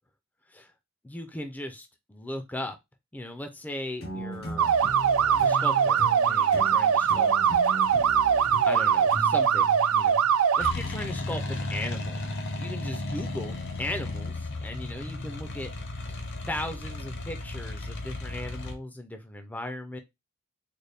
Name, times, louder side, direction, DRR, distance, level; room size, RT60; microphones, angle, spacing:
voice 1, 1.0-2.8 3.1-4.7 5.2-7.3 8.7-10.3 10.6-12.2 12.6-15.7 16.0-16.2 16.5-20.0, left 1 dB, 10° left, 0.4 m, -37 dB
sound 1, 4.0-10.4, equal, 75° left, 1.3 m, -38 dB
sound 2, 4.6-10.7, right 7 dB, 90° right, 0.4 m, -22 dB
sound 3, 10.6-18.7, left 2 dB, 60° left, 0.7 m, -34 dB
4.0 x 2.2 x 3.3 m
head